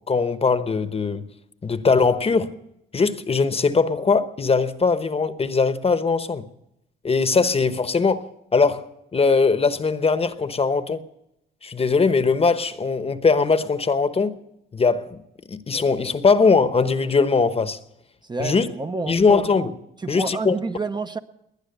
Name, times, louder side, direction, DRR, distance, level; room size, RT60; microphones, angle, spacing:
voice 1, 0.1-1.2 1.6-2.5 2.9-6.4 7.0-8.3 8.5-8.9 9.1-11.0 11.6-14.4 14.7-15.2 15.5-17.8 18.4-18.7 19.1-19.8 20.1-20.5, left 4 dB, 30° left, 1.0 m, -20 dB
voice 2, 18.2-19.2 20.0-21.2, right 3 dB, 20° right, 0.7 m, -29 dB
20.5 x 10.0 x 6.7 m
cardioid pair, 90°, 20 cm